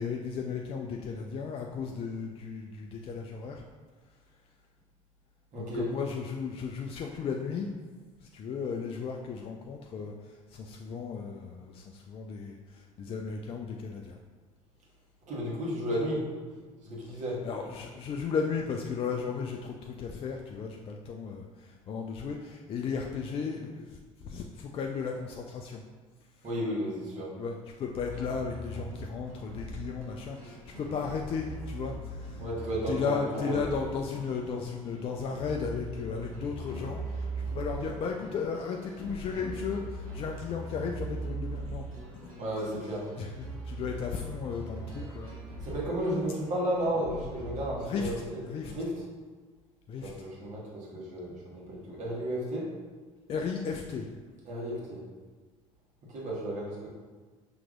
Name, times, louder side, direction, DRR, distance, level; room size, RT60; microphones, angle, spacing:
voice 1, 0.0-3.6 5.6-7.7 8.2-14.2 17.1-25.8 27.4-32.4 32.9-41.8 43.2-45.3 47.8-48.7 49.9-50.1 53.3-54.1, left 5 dB, 35° left, 1 dB, 0.4 m, -35 dB
voice 2, 5.5-5.9 15.3-16.3 16.8-17.4 26.4-27.3 32.4-33.6 42.4-43.1 45.6-48.2 48.6-49.0 50.0-52.7 54.5-55.0 56.1-56.9, equal, 45° right, -5 dB, 1.4 m, -33 dB
sound 1, 28.0-47.7, right 2 dB, 90° right, 0.7 m, -41 dB
5.9 x 2.9 x 2.5 m, 1.4 s
figure-of-eight pair, 60°, 18 cm